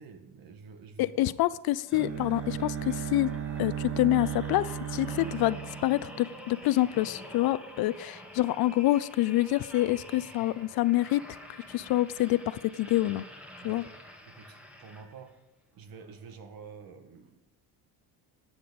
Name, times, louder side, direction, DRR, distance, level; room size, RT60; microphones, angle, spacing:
voice 1, 0.0-1.4 13.6-13.9 14.3-15.4 15.7-17.4, right 5 dB, 55° right, 8 dB, 1.8 m, -49 dB
voice 2, 1.0-3.3 3.6-11.3 11.7-13.2 13.6-13.8, left 15 dB, 60° left, 17 dB, 0.6 m, -27 dB
sound 1, 1.8-15.4 16.0-16.1, left 1 dB, 5° right, 2.0 m, -48 dB
Bowed string instrument, 1.9-6.9, right 8 dB, 30° right, 1.2 m, -36 dB
16.0 x 9.7 x 5.3 m, 0.96 s
cardioid pair, 140°, 42 cm